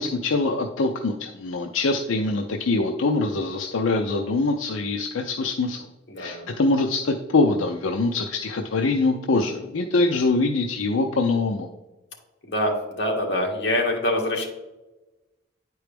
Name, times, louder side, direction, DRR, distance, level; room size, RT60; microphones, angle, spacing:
voice 1, 0.0-5.9 6.2-11.7, left 3 dB, 90° left, 3 dB, 0.5 m, -24 dB
voice 2, 6.1-6.5 12.5-12.7 13.0-14.5, left 1 dB, 60° left, -1 dB, 1.7 m, -24 dB
9.9 x 4.6 x 3.4 m, 1.1 s
head